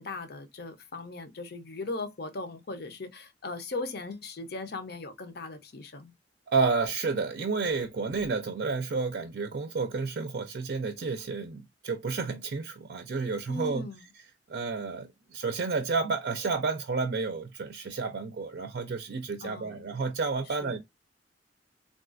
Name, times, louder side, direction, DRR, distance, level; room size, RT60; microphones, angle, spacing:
voice 1, 0.0-6.1 13.5-14.0 19.4-19.8 20.6-20.8, left 3 dB, 60° left, 0.6 m, -38 dB
voice 2, 6.5-13.8 14.5-20.8, right 4 dB, 55° right, 0.4 m, -31 dB
3.6 x 2.3 x 2.4 m
head